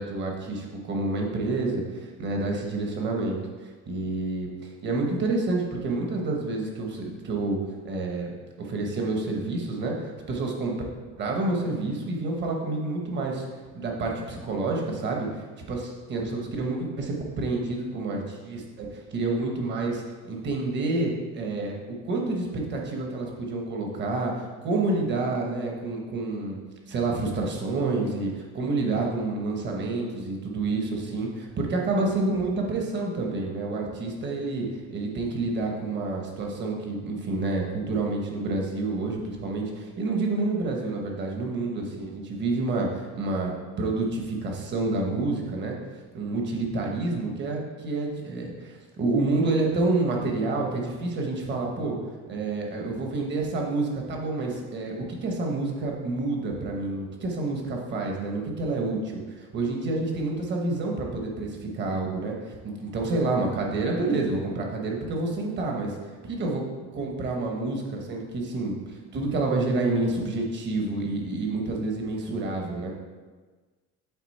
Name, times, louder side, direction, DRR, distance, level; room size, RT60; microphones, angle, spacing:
voice 1, 0.0-3.4 3.9-7.6 7.8-8.3 8.6-10.7 11.2-13.5 13.7-21.7 22.0-26.6 26.9-43.5 43.8-45.8 46.1-52.0 52.3-66.0 66.2-72.9, right 2 dB, 35° right, 0 dB, 1.1 m, -28 dB
8.2 x 3.9 x 4.1 m, 1.4 s
cardioid pair, 175°, 32 cm